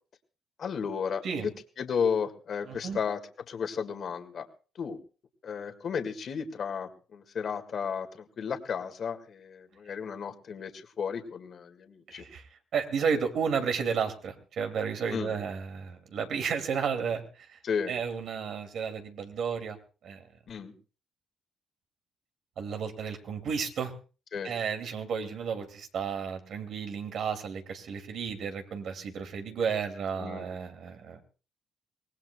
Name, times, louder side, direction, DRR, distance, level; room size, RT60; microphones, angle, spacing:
voice 1, 0.6-1.5 1.8-3.2 3.5-4.5 4.8-5.0 5.4-12.3 15.1-15.3 17.6-17.9 20.5-20.7 24.3-24.5 30.2-30.5, left 6 dB, 55° left, 7 dB, 1.9 m, -33 dB
voice 2, 2.7-3.0 12.1-17.6 17.9-19.8 20.0-20.3 22.6-23.9 24.4-31.2, right 6 dB, 70° right, 6 dB, 2.5 m, -32 dB
24.0 x 19.0 x 2.3 m, 0.36 s
cardioid pair, 90°, 0 cm